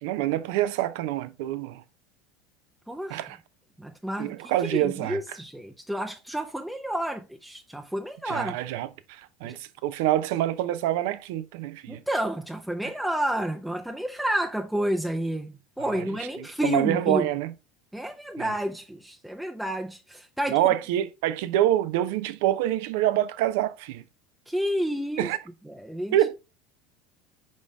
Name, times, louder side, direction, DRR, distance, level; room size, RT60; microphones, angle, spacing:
voice 1, 0.0-1.8 3.1-3.4 4.2-5.4 8.3-12.0 15.8-16.1 16.4-17.5 18.4-18.5 20.5-24.0 25.2-25.4 26.1-26.4, right 13 dB, 70° right, 0.6 m, -26 dB
voice 2, 2.9-3.3 3.8-4.3 4.7-8.6 9.4-9.6 11.9-17.3 17.9-20.6 24.5-25.3 25.7-26.1, right 1 dB, 5° right, 0.7 m, -30 dB
5.3 x 5.2 x 3.4 m
hypercardioid pair, 80°, 0 cm